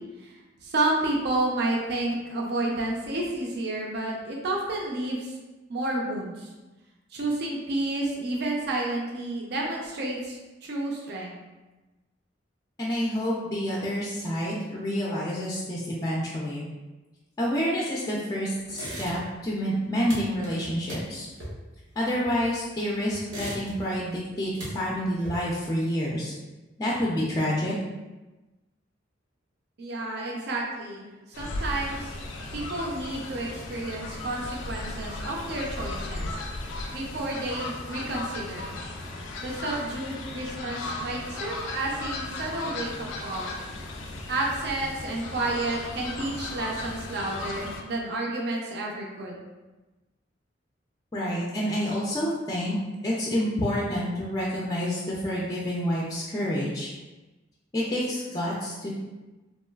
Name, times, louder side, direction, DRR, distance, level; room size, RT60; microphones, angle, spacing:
voice 1, 0.6-5.4 5.7-6.5 7.1-11.4 29.8-31.1 31.4-32.1 32.5-36.4 36.9-38.7 39.4-43.5 44.3-49.4, right 2 dB, 60° right, -2 dB, 0.5 m, -30 dB
voice 2, 12.8-16.7 17.4-21.3 22.0-26.3 26.8-27.8 51.1-52.8 53.0-56.9 57.7-58.9, equal, 20° left, -5 dB, 0.3 m, -28 dB
sound 1, 18.7-19.5 19.7-22.7 23.1-24.0 24.3-25.7, right 1 dB, 90° right, 0.9 m, -38 dB
Fowl, 31.3-47.8, left 2 dB, 90° left, 0.4 m, -36 dB
3.0 x 2.3 x 2.2 m, 1.1 s
head